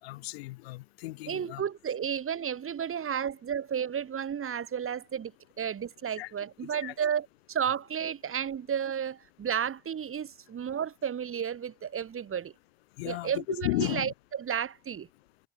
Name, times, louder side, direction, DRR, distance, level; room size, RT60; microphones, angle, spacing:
voice 1, 0.0-1.6 6.2-6.3 6.8-6.9 13.0-14.1, left 19 dB, 80° left, 5.9 m, -34 dB
voice 2, 1.3-5.3 5.6-12.5 13.0-15.1, right 8 dB, 45° right, 4.3 m, -32 dB
hypercardioid pair, 55°, 31 cm